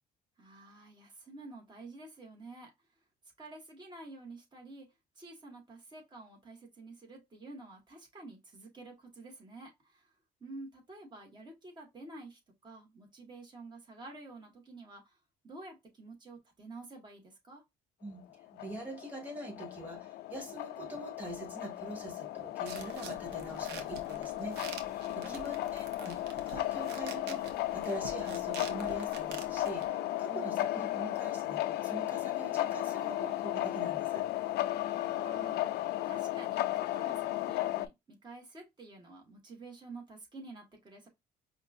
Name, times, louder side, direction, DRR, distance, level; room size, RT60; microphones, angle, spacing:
voice 1, 0.4-2.7 3.4-4.9 5.2-10.1 10.4-15.2 15.4-17.6 25.1-25.7 30.3-30.5 34.8-41.1, right 2 dB, 25° right, 1.7 m, -50 dB
sound 1, 18.4-37.9, left 14 dB, 75° left, 0.4 m, -35 dB
voice 2, 18.5-24.6 24.9-34.3, right 2 dB, 10° right, 2.2 m, -44 dB
sound 2, 22.7-29.9, right 6 dB, 80° right, 0.9 m, -48 dB
5.1 x 2.5 x 2.6 m
cardioid pair, 110°, 17 cm